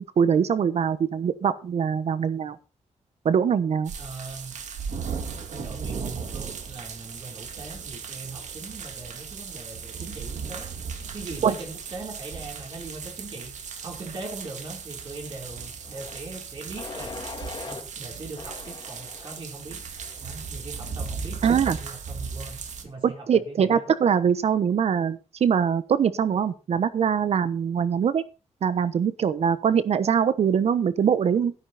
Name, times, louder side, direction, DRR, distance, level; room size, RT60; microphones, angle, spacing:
voice 1, 0.0-2.6 3.2-3.9 11.4-11.5 21.4-21.8 23.0-28.2 28.6-31.5, right 7 dB, 60° right, 14 dB, 1.1 m, -23 dB
sound 1, 3.8-22.8, right 6 dB, 75° right, 2.3 m, -37 dB
voice 2, 4.0-4.6 5.5-10.7 11.1-17.2 17.6-23.9, right 3 dB, 45° right, 2 dB, 3.5 m, -40 dB
sound 2, 15.8-16.2 16.7-17.8 18.4-19.4 20.0-20.4, left 4 dB, 40° left, 2.2 m, -41 dB
12.5 x 11.0 x 4.2 m, 0.32 s
wide cardioid pair, 175°, 12 cm